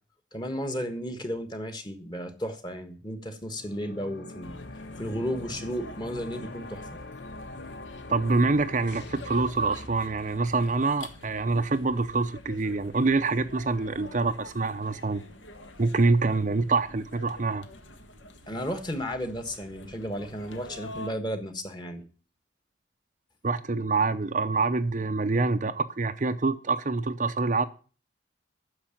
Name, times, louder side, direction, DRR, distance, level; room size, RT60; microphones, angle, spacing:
voice 1, 0.3-4.5 5.0-6.9 18.5-22.0, equal, 20° left, 1.4 m, -33 dB
sound 1, 3.4-9.9, left 2 dB, 60° left, 0.7 m, -43 dB
sound 2, 4.4-21.1, left 1 dB, 75° left, 1.6 m, -46 dB
voice 2, 8.1-15.2 15.8-17.7 23.4-27.7, right 3 dB, 40° right, 0.6 m, -26 dB
9.7 x 6.7 x 8.9 m
head